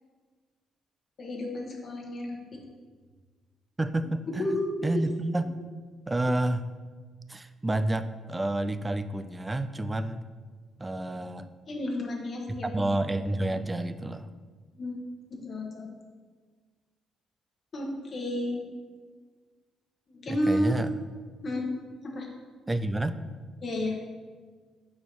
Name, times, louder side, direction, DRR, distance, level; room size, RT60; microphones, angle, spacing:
voice 1, 1.2-2.6 4.4-5.0 11.7-12.8 14.7-15.0 15.3-15.9 17.7-18.7 20.1-20.8 21.4-21.7 22.0-22.3 23.6-24.0, left 1 dB, 45° left, 0 dB, 1.3 m, -31 dB
voice 2, 3.8-5.6 6.1-6.6 7.3-10.3 10.8-11.5 12.6-14.3 20.3-20.9 22.7-23.2, right 1 dB, 15° right, 12 dB, 0.3 m, -29 dB
4.5 x 4.3 x 5.3 m, 1.5 s
cardioid pair, 90°, 0 cm